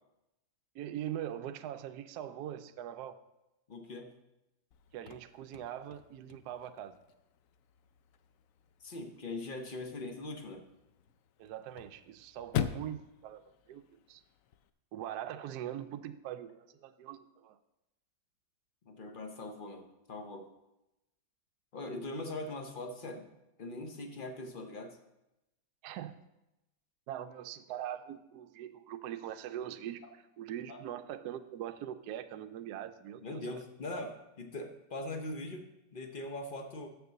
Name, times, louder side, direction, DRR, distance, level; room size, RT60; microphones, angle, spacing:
voice 1, 0.7-3.2 4.9-7.0 11.4-13.4 13.7-14.2 14.9-17.6 25.8-26.2 27.1-33.4, right 11 dB, 70° right, 8 dB, 1.0 m, -42 dB
voice 2, 3.7-4.1 8.8-10.7 18.8-20.5 21.7-23.3 23.6-25.0 30.7-30.8 33.2-36.9, left 2 dB, 45° left, 4 dB, 0.7 m, -41 dB
Chirp tweet / Car / Slam, 4.7-14.7, left 10 dB, 90° left, 0.7 m, -43 dB
6.7 x 6.7 x 6.8 m, 0.93 s
omnidirectional pair, 2.0 m